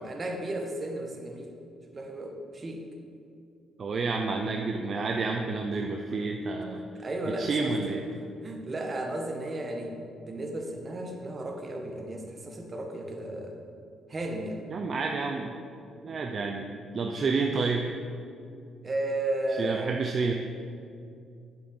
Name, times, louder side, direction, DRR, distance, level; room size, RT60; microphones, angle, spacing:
voice 1, 0.0-1.5 1.9-2.8 7.0-7.8 8.4-9.9 10.2-13.6 14.1-14.6 16.0-16.2 18.8-19.9, right 1 dB, 35° right, 2 dB, 1.7 m, -34 dB
voice 2, 3.8-6.8 7.4-8.0 14.7-15.5 16.0-17.9 19.6-20.3, right 4 dB, 50° right, 2 dB, 0.8 m, -29 dB
9.0 x 7.1 x 7.8 m, 2.4 s
cardioid pair, 90°, 0 cm